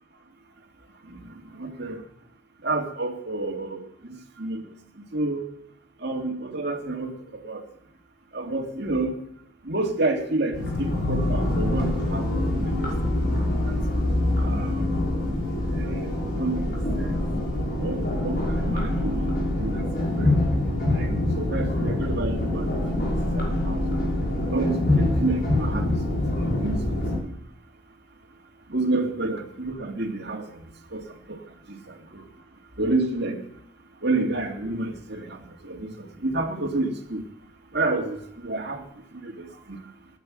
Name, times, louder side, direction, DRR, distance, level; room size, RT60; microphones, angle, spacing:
voice 1, 1.0-2.0 2.6-4.6 5.1-5.4 6.0-7.7 8.3-9.2 9.6-12.3 12.6-12.9 13.6-13.8 14.4-15.0 15.7-17.2 17.8-19.3 19.6-19.8 20.2-20.3 20.9-23.8 24.4-27.1 28.7-30.6 30.9-31.4 31.7-32.3 32.8-33.4 34.0-37.2 37.7-38.9 39.1-39.8, right 2 dB, 55° right, 2 dB, 2.4 m, -30 dB
sound 1, 10.5-27.2, left 1 dB, 50° left, 5.9 m, -25 dB
17.5 x 10.5 x 7.6 m, 0.73 s
head